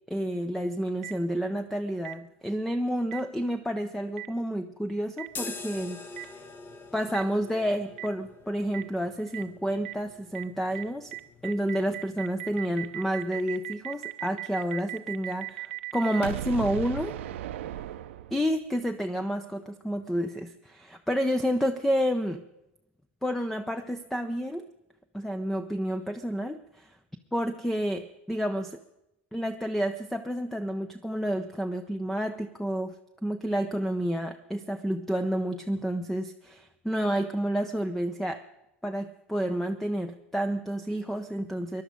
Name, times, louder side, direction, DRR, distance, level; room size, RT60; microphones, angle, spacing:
voice 1, 0.1-6.1 6.3-6.4 6.9-11.1 11.4-17.2 18.3-22.4 23.2-24.7 25.1-27.0 27.3-28.8 29.3-33.0 33.2-38.4 38.8-41.8, equal, 5° left, 10 dB, 0.7 m, -30 dB
Boom, 1.0-1.1 2.0-2.1 3.1-3.2 4.2-4.3 5.2-5.3 6.2-6.3 7.1-7.2 8.0-8.1 8.7-8.8 9.3-9.4 9.8-9.9 10.3-10.4 10.7-10.8 11.1-18.7, right 14 dB, 75° right, 0.7 m, -36 dB
sound 1, 5.3-13.1, left 4 dB, 30° left, 1.4 m, -45 dB
20.5 x 11.5 x 5.2 m, 0.91 s
hypercardioid pair, 95°, 7 cm